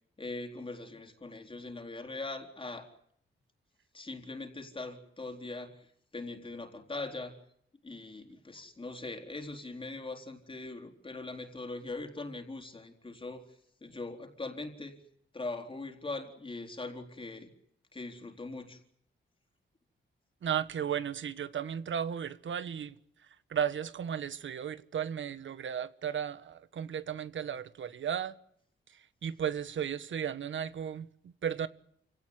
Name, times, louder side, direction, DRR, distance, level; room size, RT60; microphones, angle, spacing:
voice 1, 0.2-2.9 3.9-7.3 7.8-13.4 13.8-15.0 15.3-17.5 17.9-18.8, left 3 dB, 25° left, 4.1 m, -41 dB
voice 2, 20.4-22.9 23.5-28.3 28.9-31.7, right 8 dB, 70° right, 1.5 m, -35 dB
29.0 x 18.0 x 9.7 m
wide cardioid pair, 115°, 20 cm